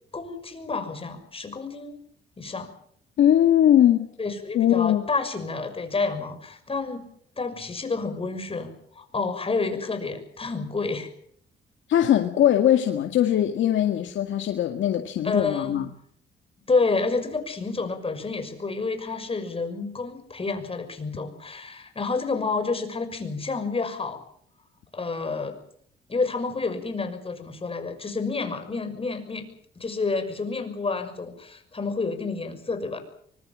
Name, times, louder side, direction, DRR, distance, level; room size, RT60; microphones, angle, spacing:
voice 1, 0.1-2.0 2.4-2.7 4.2-7.1 7.4-11.1 15.2-15.8 16.7-24.2 24.9-25.5 26.1-29.5 29.8-33.0, left 4 dB, 30° left, 7 dB, 6.2 m, -29 dB
voice 2, 3.2-4.1 4.5-5.1 11.9-15.9, left 11 dB, 75° left, 5 dB, 2.0 m, -20 dB
24.5 x 20.5 x 7.6 m, 0.65 s
cardioid pair, 90°, 20 cm